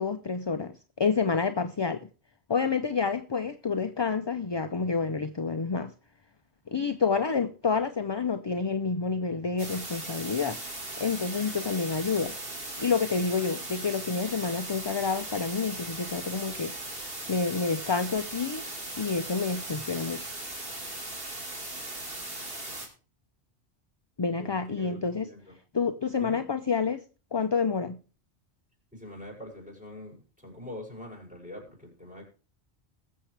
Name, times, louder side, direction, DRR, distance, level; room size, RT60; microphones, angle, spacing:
voice 1, 0.0-2.1 2.5-5.9 6.7-10.6 11.0-12.3 12.8-16.7 17.3-18.6 19.0-20.3 24.2-25.3 25.7-27.0 27.3-28.0, left 5 dB, 30° left, 0.5 m, -28 dB
sound 1, 9.6-22.9, right 2 dB, 60° right, 3.0 m, -38 dB
voice 2, 24.4-25.5 26.2-26.4 28.9-32.3, left 1 dB, 5° right, 6.1 m, -44 dB
20.5 x 7.5 x 3.3 m
omnidirectional pair, 1.1 m